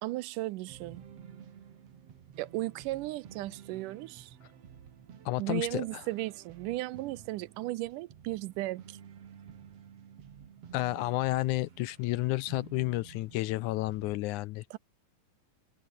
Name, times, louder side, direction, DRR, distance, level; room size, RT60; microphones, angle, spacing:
voice 1, 0.0-1.0 2.4-4.4 5.4-9.0 14.7-14.8, right 18 dB, 80° right, 2.1 m, -35 dB
sound 1, 0.7-14.2, right 8 dB, 50° right, 2.8 m, -52 dB
voice 2, 5.2-6.0 10.7-14.8, left 18 dB, 80° left, 1.8 m, -31 dB
omnidirectional pair, 3.9 m